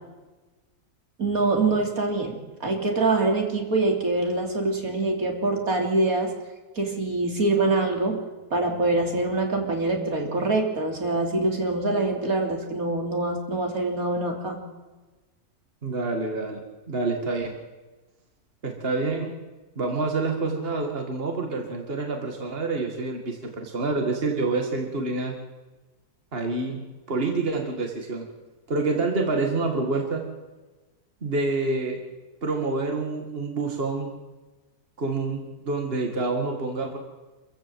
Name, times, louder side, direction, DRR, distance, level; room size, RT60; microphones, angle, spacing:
voice 1, 1.2-6.3 6.8-8.2 8.5-14.6, right 2 dB, 65° right, 2 dB, 3.7 m, -24 dB
voice 2, 15.8-16.6 16.9-17.6 18.6-19.3 19.8-25.3 26.3-28.2 28.7-30.2 31.2-32.0 32.4-34.1 35.0-37.0, right 3 dB, 40° right, 3 dB, 2.5 m, -27 dB
26.0 x 15.0 x 7.8 m, 1.2 s
omnidirectional pair, 1.6 m